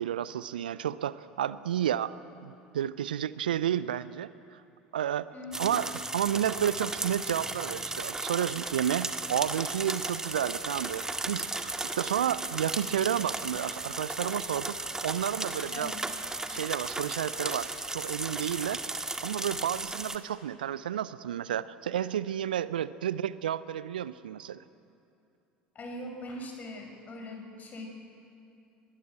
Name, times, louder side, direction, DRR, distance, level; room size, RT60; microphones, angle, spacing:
voice 1, 0.0-4.3 4.9-5.3 5.6-5.9 6.1-15.9 16.5-18.8 19.2-24.6, right 10 dB, 75° right, 17 dB, 0.6 m, -31 dB
voice 2, 5.3-5.7 15.7-16.0 25.7-27.9, left 1 dB, 35° left, 3 dB, 5.6 m, -41 dB
sound 1, 5.5-20.2, right 2 dB, 10° right, 1.8 m, -35 dB
21.5 x 21.0 x 8.4 m, 2.7 s
figure-of-eight pair, 65°, 5 cm